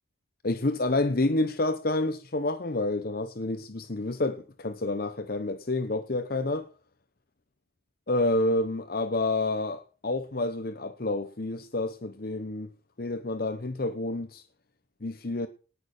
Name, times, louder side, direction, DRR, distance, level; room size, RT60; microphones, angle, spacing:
voice 1, 0.4-6.7 8.1-12.7 13.0-14.4 15.0-15.5, left 2 dB, 45° left, 0.9 m, -29 dB
19.0 x 6.5 x 6.6 m
head